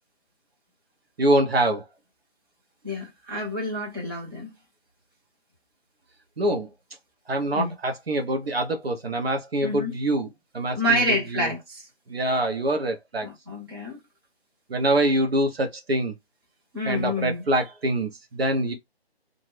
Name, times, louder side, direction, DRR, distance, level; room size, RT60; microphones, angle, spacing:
voice 1, 1.2-1.8 6.4-6.7 7.3-10.3 10.5-11.0 11.3-11.5 12.1-13.3 14.7-16.1 16.9-18.7, right 1 dB, 65° right, 0.8 m, -24 dB
voice 2, 2.8-4.5 7.5-7.7 9.6-10.0 10.7-11.9 13.2-14.0 16.7-17.4, equal, 20° right, 1.0 m, -28 dB
2.4 x 2.0 x 3.1 m
figure-of-eight pair, 165°, 32 cm